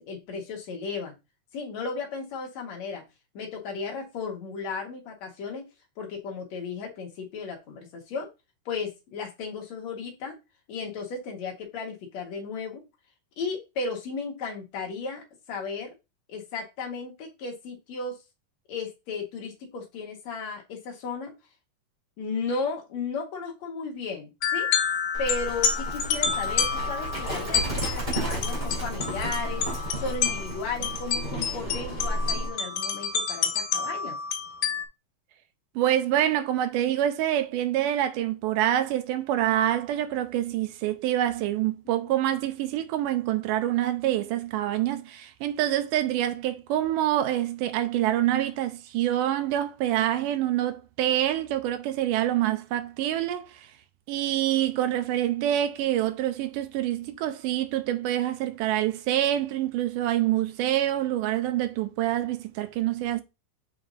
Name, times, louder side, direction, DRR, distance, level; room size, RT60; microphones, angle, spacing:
voice 1, 0.1-1.1 1.5-3.0 3.3-5.6 6.0-8.3 8.7-10.3 10.7-12.8 13.4-15.9 16.3-18.2 18.7-21.3 22.2-24.7 25.2-29.6 29.9-34.2 41.9-42.1, left 4 dB, 60° left, 2.7 m, -35 dB
sound 1, 24.4-34.9, left 7 dB, 80° left, 2.6 m, -29 dB
Livestock farm animals working animals, 25.1-32.5, right 1 dB, 15° right, 2.4 m, -32 dB
voice 2, 35.8-53.7 54.1-63.2, right 12 dB, 80° right, 2.2 m, -26 dB
7.2 x 5.0 x 2.7 m
omnidirectional pair, 3.9 m